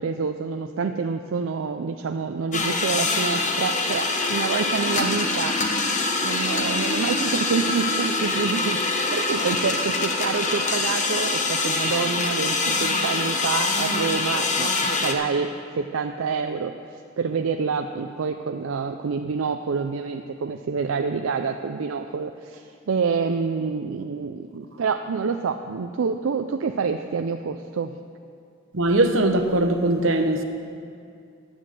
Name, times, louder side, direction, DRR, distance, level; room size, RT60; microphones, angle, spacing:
voice 1, 0.0-5.6 6.2-16.7 17.2-28.0, right 5 dB, 90° right, 6 dB, 0.4 m, -27 dB
sound 1, 2.5-15.1, left 3 dB, 40° left, 1.0 m, -24 dB
voice 2, 28.7-30.4, right 1 dB, 70° right, 5 dB, 1.0 m, -20 dB
10.5 x 7.9 x 7.5 m, 2.4 s
head